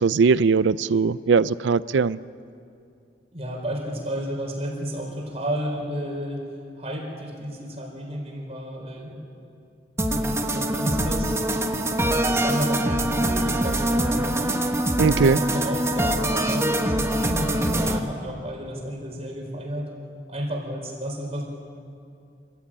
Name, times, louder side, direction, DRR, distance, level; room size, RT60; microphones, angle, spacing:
voice 1, 0.0-2.2 15.0-15.4, right 5 dB, 80° right, 18 dB, 0.5 m, -20 dB
voice 2, 3.3-6.4 6.8-9.2 10.1-11.4 11.9-14.7 15.2-19.9 20.3-21.5, equal, 35° right, 1 dB, 4.7 m, -32 dB
sound 1, 10.0-18.0, right 1 dB, 15° right, 1.3 m, -24 dB
26.5 x 15.5 x 8.8 m, 2.4 s
head